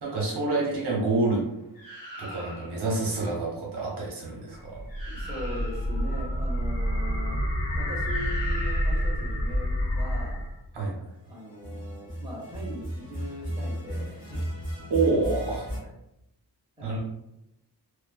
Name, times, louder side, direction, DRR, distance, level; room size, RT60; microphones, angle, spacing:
voice 1, 0.0-1.4 2.2-4.8 10.7-11.1 14.9-15.9 16.8-17.0, right 3 dB, 70° right, -3 dB, 0.9 m, -28 dB
sound 1, 1.7-2.9 4.6-4.7 4.9-6.0 8.0-9.2 11.5-15.8, equal, 20° left, 0.9 m, -36 dB
sound 2, 4.5-10.7, equal, 80° left, 0.7 m, -28 dB
voice 2, 5.0-7.4 7.7-10.4 11.2-14.4 16.8-17.0, equal, 15° right, -5 dB, 0.7 m, -40 dB
2.4 x 2.3 x 2.3 m, 0.84 s
wide cardioid pair, 165°, 41 cm